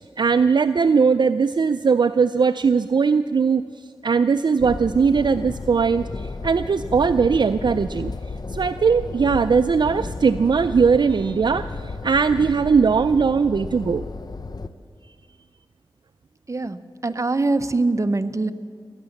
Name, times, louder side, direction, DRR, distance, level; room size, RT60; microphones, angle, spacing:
voice 1, 0.0-8.1 8.5-14.0, right 5 dB, 60° right, 12 dB, 0.4 m, -19 dB
sound 1, 4.6-14.7, left 3 dB, 50° left, 0.8 m, -33 dB
voice 2, 16.5-18.5, right 3 dB, 35° right, 10 dB, 0.7 m, -23 dB
19.0 x 9.8 x 7.1 m, 2.3 s
cardioid pair, 50°, 9 cm